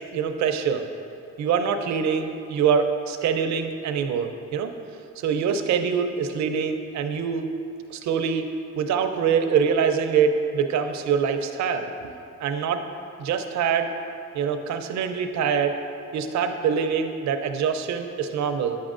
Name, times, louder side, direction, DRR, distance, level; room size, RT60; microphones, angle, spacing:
voice 1, 0.1-0.9 1.4-4.7 5.2-7.5 7.9-8.4 8.8-12.1 12.4-12.8 13.2-13.9 14.3-15.7 16.1-18.8, right 7 dB, 65° right, 7 dB, 0.6 m, -24 dB
8.4 x 6.3 x 2.5 m, 2.7 s
cardioid pair, 90°, 30 cm